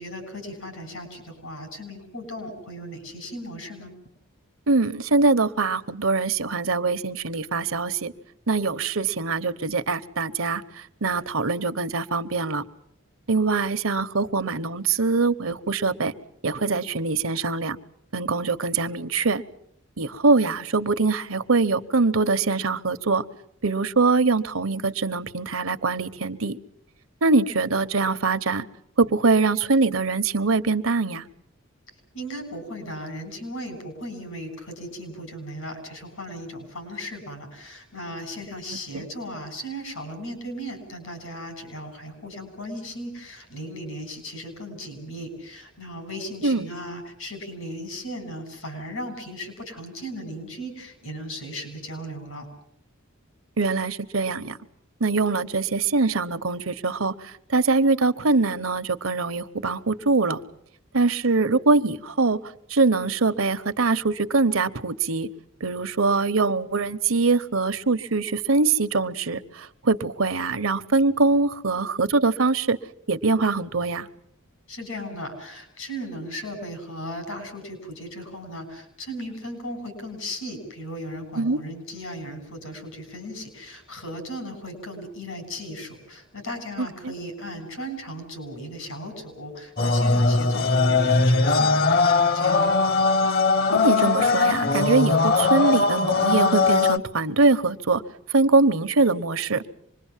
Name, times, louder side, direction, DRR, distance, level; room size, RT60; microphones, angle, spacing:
voice 1, 0.0-3.9 32.1-52.5 74.7-92.8, equal, 80° left, 8 dB, 7.1 m, -36 dB
voice 2, 4.7-8.1 8.5-12.6 13.3-16.1 16.4-17.8 18.1-19.4 20.0-23.2 23.6-26.6 27.2-28.7 29.0-31.2 38.9-39.0 46.4-46.7 53.6-54.6 55.0-60.4 60.9-62.4 62.7-65.3 65.6-72.8 73.1-74.1 81.4-81.6 87.0-87.1 93.7-98.0 98.3-99.6, right 3 dB, 80° right, 12 dB, 1.0 m, -23 dB
sound 1, 89.8-97.0, left 3 dB, 50° left, 1.0 m, -20 dB
26.0 x 21.5 x 7.4 m, 0.71 s
head